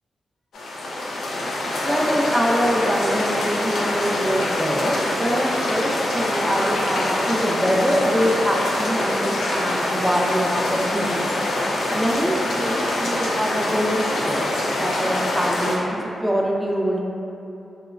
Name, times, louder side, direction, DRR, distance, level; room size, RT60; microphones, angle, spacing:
sound 1, 0.5-15.8, left 1 dB, 80° left, 0.3 m, -24 dB
voice 1, 1.8-11.3 11.9-14.4 14.8-17.0, equal, 5° right, -2 dB, 0.4 m, -24 dB
2.9 x 2.1 x 2.3 m, 2.8 s
cardioid pair, 50°, 0 cm